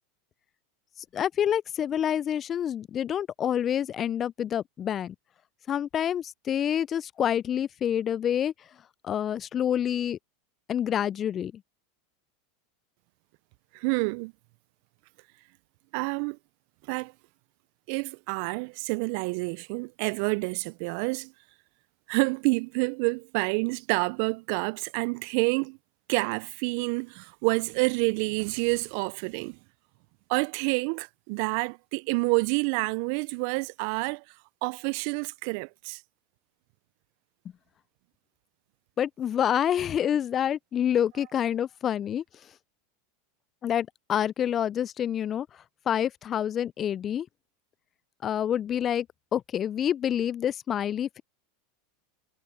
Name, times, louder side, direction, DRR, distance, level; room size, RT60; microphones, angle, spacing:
voice 1, 1.1-5.1 5.7-8.5 9.0-10.2 10.7-11.5 39.0-42.2 43.6-45.5 45.9-47.3 48.2-49.1 49.3-51.2, left 9 dB, 35° left, 0.4 m, -27 dB
voice 2, 13.7-14.3 15.9-16.4 16.9-17.1 17.9-21.3 22.1-25.8 26.1-29.6 30.3-34.2 34.6-36.0, right 31 dB, 60° right, 0.4 m, -28 dB
hypercardioid pair, 90°, 0 cm